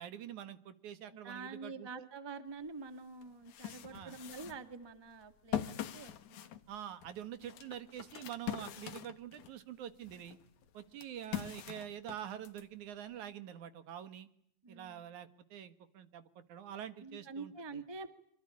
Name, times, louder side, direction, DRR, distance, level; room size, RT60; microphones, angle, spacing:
voice 1, 0.0-2.1 3.9-4.2 6.7-10.4 10.7-14.3 14.7-17.8, right 10 dB, 75° right, 12 dB, 2.9 m, -46 dB
voice 2, 1.1-6.6 14.6-15.0 17.0-18.1, right 4 dB, 10° right, 10 dB, 1.5 m, -47 dB
sound 1, 2.7-2.8 3.2-9.6 10.0-12.6, left 11 dB, 70° left, 2.8 m, -43 dB
26.5 x 25.0 x 8.6 m, 0.68 s
omnidirectional pair, 3.5 m